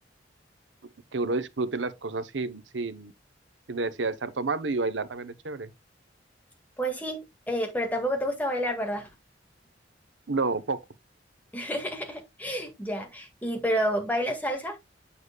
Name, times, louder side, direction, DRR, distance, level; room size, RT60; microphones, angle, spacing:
voice 1, 1.1-3.1 3.7-5.7 10.3-10.8, right 3 dB, 80° right, 0.9 m, -30 dB
voice 2, 6.8-7.2 7.5-9.1 11.5-14.8, equal, 10° left, 1.9 m, -29 dB
8.1 x 7.0 x 2.3 m
head